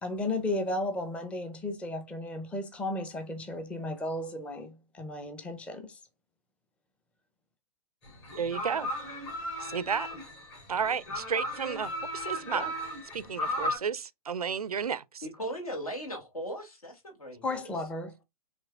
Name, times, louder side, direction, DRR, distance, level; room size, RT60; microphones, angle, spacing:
voice 1, 0.0-6.0 17.4-18.2, left 2 dB, 5° left, 0.5 m, -34 dB
sound 1, 8.1-13.8, equal, 50° left, 3.0 m, -35 dB
voice 2, 8.4-8.9 9.6-10.1 10.7-12.6 13.1-15.3, right 6 dB, 80° right, 0.4 m, -32 dB
voice 3, 15.2-17.6, equal, 75° left, 2.1 m, -38 dB
6.1 x 2.8 x 2.3 m
figure-of-eight pair, 110°, 19 cm